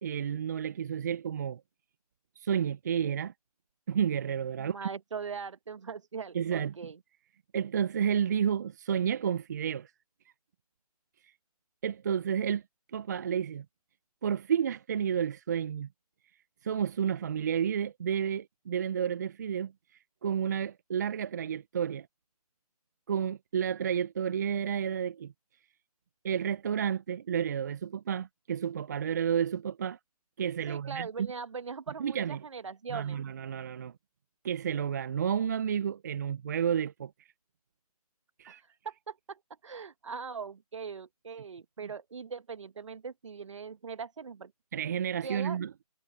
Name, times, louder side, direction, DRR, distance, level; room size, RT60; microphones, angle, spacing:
voice 1, 0.0-1.6 2.4-3.3 3.9-4.9 6.3-6.7 7.5-9.9 11.8-12.6 12.9-13.6 14.2-15.9 16.6-19.7 20.2-22.1 23.1-25.3 26.2-30.0 30.4-31.3 32.0-32.4 32.9-33.9 34.4-37.1 38.4-38.6 44.7-45.7, right 8 dB, 30° right, 0.8 m, -31 dB
voice 2, 4.6-7.0 30.7-33.2 38.5-38.6 38.8-44.5 45.2-45.6, right 5 dB, 50° right, 1.9 m, -41 dB
figure-of-eight pair, 155°, 20 cm